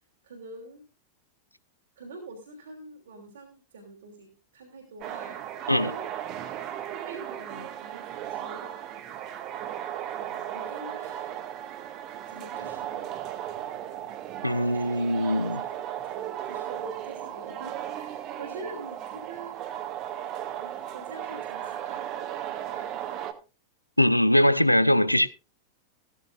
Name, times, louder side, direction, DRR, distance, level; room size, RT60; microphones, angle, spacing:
voice 1, 0.2-0.8 2.0-5.4 5.7-6.0 7.1-8.7 10.1-11.4 12.3-13.0 15.7-15.8 16.1-19.7 20.6-23.3, right 2 dB, 65° right, 3.1 m, -45 dB
sound 1, 5.0-23.3, right 11 dB, 40° right, 1.7 m, -36 dB
voice 2, 14.4-15.7 24.0-25.3, left 1 dB, 90° left, 0.7 m, -22 dB
16.0 x 14.0 x 2.4 m
figure-of-eight pair, 90°, 0 cm